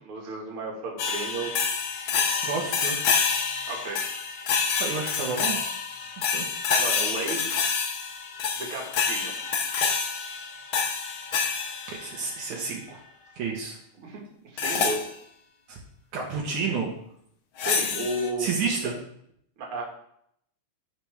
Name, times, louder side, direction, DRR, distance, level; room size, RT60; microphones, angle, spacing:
voice 1, 0.1-1.6 3.7-4.0 6.7-7.6 8.6-9.3 14.0-15.0 17.6-18.6 19.6-19.8, right 2 dB, 45° right, -1 dB, 2.4 m, -33 dB
Japan Asian Hand Cymbals Improv, 1.0-12.5 14.6-15.1 17.6-18.3, left 5 dB, 75° left, 1.2 m, -27 dB
voice 2, 2.4-3.1 4.8-5.6 6.2-6.5 11.9-13.0 13.3-13.8 15.7-15.8 16.1-16.9 18.4-18.9, right 5 dB, 70° right, -1 dB, 2.5 m, -30 dB
12.0 x 5.8 x 3.5 m, 0.71 s
omnidirectional pair, 3.7 m